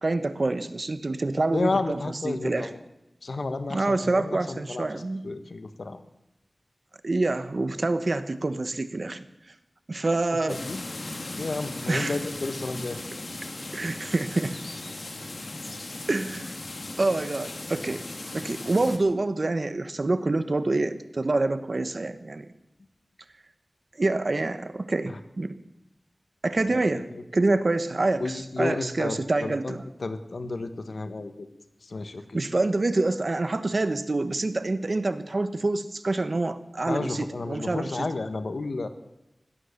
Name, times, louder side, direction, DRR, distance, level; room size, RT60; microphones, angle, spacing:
voice 1, 0.0-2.7 3.7-5.2 7.0-9.2 9.9-10.6 11.9-12.2 13.7-14.6 16.1-16.5 17.0-18.0 18.3-22.5 24.0-25.5 26.4-29.9 32.3-38.1, right 2 dB, 55° right, 11 dB, 1.2 m, -27 dB
voice 2, 1.5-2.8 3.2-6.0 10.5-10.8 11.4-13.0 26.7-26.8 28.2-31.5 31.8-32.4 36.9-38.9, left 3 dB, 80° left, 9 dB, 1.4 m, -32 dB
sound 1, 10.5-19.0, left 2 dB, 60° left, 2.2 m, -37 dB
17.5 x 12.5 x 6.7 m, 0.90 s
wide cardioid pair, 55°, 0 cm